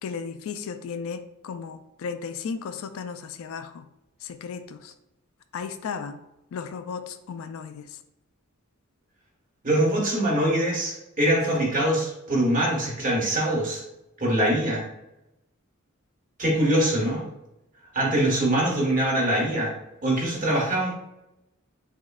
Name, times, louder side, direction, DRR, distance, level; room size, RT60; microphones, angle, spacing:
voice 1, 0.0-3.9 4.2-4.9 5.5-6.2 6.5-8.0, left 6 dB, 70° left, 11 dB, 0.3 m, -35 dB
voice 2, 9.6-13.8 14.2-14.8 16.4-17.2 17.9-19.7 20.0-20.9, right 1 dB, 40° right, -4 dB, 1.4 m, -23 dB
6.1 x 2.1 x 2.3 m, 0.88 s
head